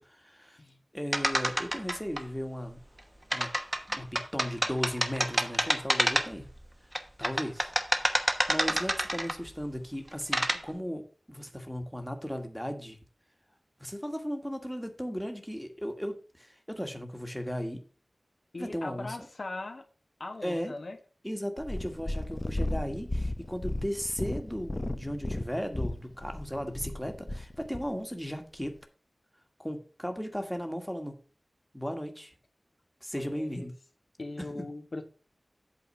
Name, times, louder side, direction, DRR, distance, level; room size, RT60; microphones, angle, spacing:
voice 1, 0.0-0.6 0.9-2.8 3.3-3.5 3.9-6.5 7.2-7.7 8.1-11.0 11.3-13.0 13.8-17.8 18.6-19.1 20.4-20.7 21.2-28.7 29.6-31.1 31.7-32.3 33.0-33.7 34.4-34.6, equal, ahead, 5 dB, 1.6 m, -36 dB
sound 1, 1.1-2.2 3.3-6.5 7.0-9.5 10.1-10.6, right 1 dB, 15° right, 1.1 m, -28 dB
voice 2, 18.5-19.9 20.2-21.0 33.1-33.7 34.2-35.0, left 2 dB, 70° left, 5 dB, 1.5 m, -40 dB
Purr, 21.6-27.9 28.6-28.7, left 1 dB, 35° left, 0.7 m, -34 dB
8.4 x 4.2 x 6.9 m, 0.37 s
wide cardioid pair, 65°, 0 cm